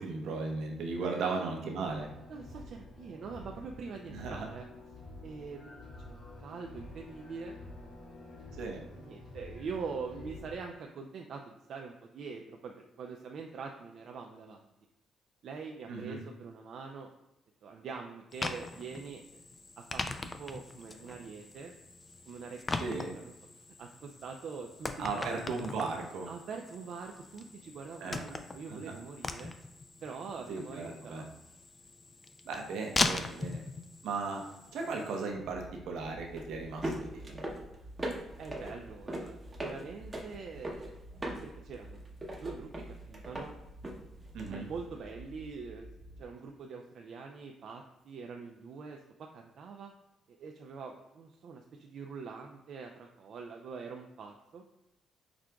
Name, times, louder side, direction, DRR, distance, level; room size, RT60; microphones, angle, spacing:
voice 1, 0.0-2.1 4.1-4.5 8.5-8.8 15.9-16.2 22.8-23.2 25.0-26.3 28.0-28.2 28.7-28.9 30.5-31.2 32.5-33.6 34.0-34.4 34.7-37.4 44.3-44.7, right 4 dB, 80° right, 1 dB, 0.8 m, -36 dB
voice 2, 1.0-1.5 2.3-4.7 5.2-7.6 8.9-14.6 15.4-17.1 17.6-19.4 19.8-20.0 20.4-21.7 22.3-24.9 25.1-25.5 26.3-29.5 30.0-31.3 38.4-40.9 41.4-42.0 42.4-42.7 43.1-43.5 44.5-45.9 46.2-49.9 50.4-54.6, right 5 dB, 65° right, 2 dB, 0.3 m, -44 dB
sound 1, 1.8-10.6, left 2 dB, 65° left, 1.0 m, -49 dB
sound 2, 18.3-35.3, left 3 dB, 30° left, 0.3 m, -40 dB
sound 3, 35.3-46.2, right 1 dB, 20° right, 0.8 m, -42 dB
5.9 x 2.4 x 2.3 m, 0.95 s
cardioid pair, 90°, 0 cm